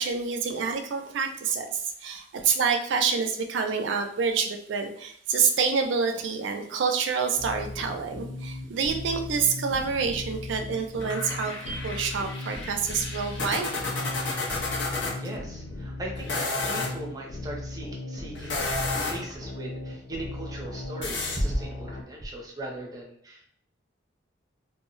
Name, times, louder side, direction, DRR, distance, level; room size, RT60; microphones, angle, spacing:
voice 1, 0.0-13.7 15.1-15.2, right 5 dB, 75° right, 5 dB, 0.4 m, -27 dB
sound 1, 7.4-22.0, left 2 dB, 40° left, 0.3 m, -38 dB
sound 2, 11.0-15.1 16.2-16.9 18.3-19.3 21.0-21.4, left 3 dB, 70° left, 0.7 m, -31 dB
voice 2, 15.1-16.3 16.7-23.5, right 1 dB, 20° right, -1 dB, 0.5 m, -37 dB
2.1 x 2.0 x 3.7 m, 0.66 s
head